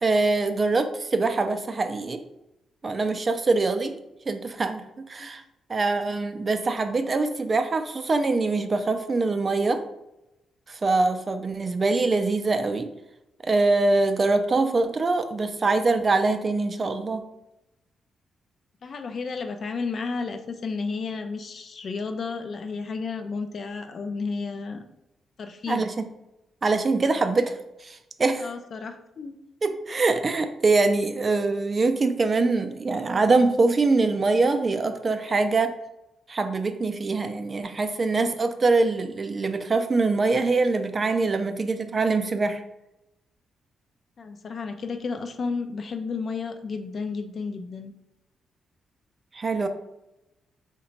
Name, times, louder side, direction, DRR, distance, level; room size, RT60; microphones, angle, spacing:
voice 1, 0.0-2.2 2.8-4.0 4.3-5.4 5.7-9.8 10.7-12.9 13.4-17.2 25.7-25.9 26.6-28.5 29.6-35.7 36.3-42.6 49.3-49.7, right 3 dB, 40° right, 8 dB, 0.3 m, -23 dB
voice 2, 18.8-24.8 25.4-25.9 28.4-29.4 44.2-47.9, left 4 dB, 55° left, 7 dB, 0.4 m, -32 dB
2.8 x 2.2 x 4.0 m, 0.90 s
cardioid pair, 80°, 0 cm